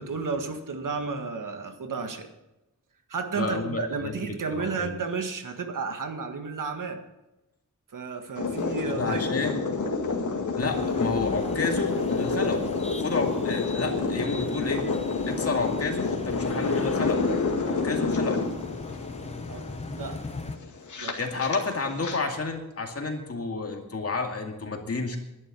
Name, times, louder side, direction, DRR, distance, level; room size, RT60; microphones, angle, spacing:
voice 1, 0.0-2.3 3.1-7.0 7.9-9.3 12.3-12.5 19.5-19.7 19.9-20.2 21.0-21.2, right 4 dB, 80° right, 6 dB, 1.8 m, -32 dB
voice 2, 3.4-5.0 8.8-9.6 10.6-12.6 13.0-14.9 15.3-17.3 17.6-18.4 21.2-25.2, left 4 dB, 50° left, 3 dB, 2.3 m, -30 dB
sound 1, 8.4-22.2, left 4 dB, 65° left, 2.1 m, -29 dB
sound 2, 10.6-20.6, left 3 dB, 20° left, 0.9 m, -41 dB
12.0 x 11.0 x 6.8 m, 0.98 s
wide cardioid pair, 160°, 32 cm